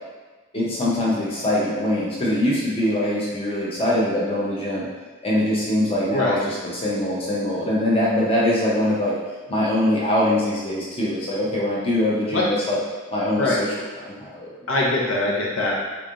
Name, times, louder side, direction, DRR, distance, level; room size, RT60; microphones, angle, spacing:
voice 1, 0.5-4.9 5.2-9.1 9.5-12.8 13.1-13.7 14.0-14.5, left 1 dB, 30° left, -6 dB, 0.7 m, -23 dB
voice 2, 14.7-15.7, left 2 dB, 80° left, -3 dB, 0.7 m, -22 dB
3.6 x 3.1 x 2.5 m, 1.3 s
head